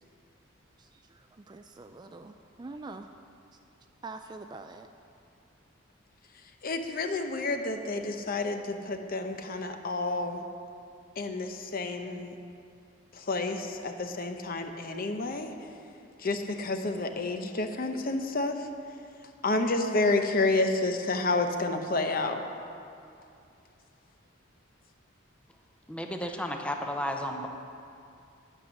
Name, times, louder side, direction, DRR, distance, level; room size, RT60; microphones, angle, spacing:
voice 1, 0.8-3.1 4.0-4.9, right 3 dB, 20° right, 7 dB, 0.3 m, -45 dB
voice 2, 6.6-10.4 11.2-12.3 13.1-15.5 16.2-18.7 19.4-22.4, left 2 dB, 45° left, 6 dB, 0.7 m, -30 dB
voice 3, 25.9-27.5, equal, 5° left, 3 dB, 0.7 m, -33 dB
9.8 x 8.8 x 6.4 m, 2.5 s
head